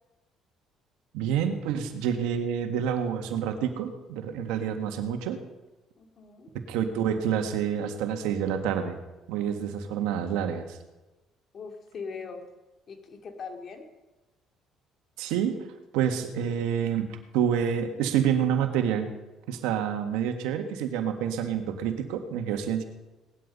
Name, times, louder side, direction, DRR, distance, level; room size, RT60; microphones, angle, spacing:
voice 1, 1.1-5.4 6.5-9.0 9.3-10.8 15.2-15.7 15.9-19.1 19.5-22.8, right 8 dB, 85° right, 6 dB, 1.8 m, -28 dB
voice 2, 6.0-6.5 11.5-12.5 12.9-13.9, left 5 dB, 50° left, 5 dB, 2.7 m, -40 dB
18.5 x 11.5 x 5.5 m, 1.1 s
supercardioid pair, 75°, 0 cm